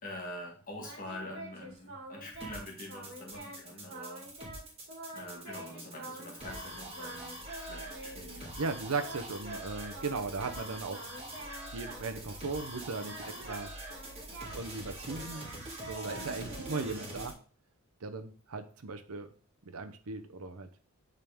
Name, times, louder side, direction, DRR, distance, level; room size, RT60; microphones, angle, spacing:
voice 1, 0.0-4.3 5.1-8.6 13.2-13.4 16.1-16.5, left 1 dB, 40° left, 0 dB, 1.8 m, -45 dB
Singing, 0.8-2.6 2.9-3.6 3.9-4.6 4.9-6.7 6.9-8.4 9.0-12.6 12.9-17.3, right 1 dB, 50° right, 1.9 m, -47 dB
sound 1, 2.4-17.3, right 1 dB, 25° right, 2.2 m, -44 dB
voice 2, 8.6-11.1 11.7-13.7 14.5-15.5 15.9-17.3 18.0-19.3 19.6-20.9, right 4 dB, 80° right, 9 dB, 0.8 m, -37 dB
8.5 x 3.9 x 3.5 m, 0.42 s
head